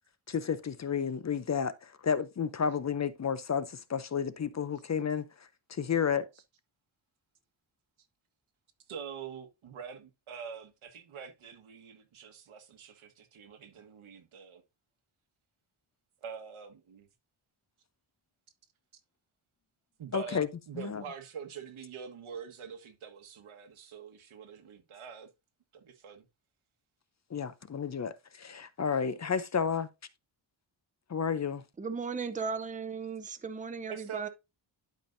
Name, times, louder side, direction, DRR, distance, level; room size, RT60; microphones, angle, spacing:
voice 1, 0.3-5.3 5.7-6.3 20.1-20.5 20.8-21.0 27.3-29.9 31.1-31.6, left 6 dB, 35° left, 0.6 m, -31 dB
voice 2, 8.9-14.6 16.2-17.1 20.0-25.3 25.7-26.2 33.9-34.3, right 7 dB, 90° right, 1.6 m, -45 dB
voice 3, 31.8-34.3, right 5 dB, 15° right, 0.6 m, -36 dB
11.5 x 5.3 x 2.6 m
wide cardioid pair, 175°, 48 cm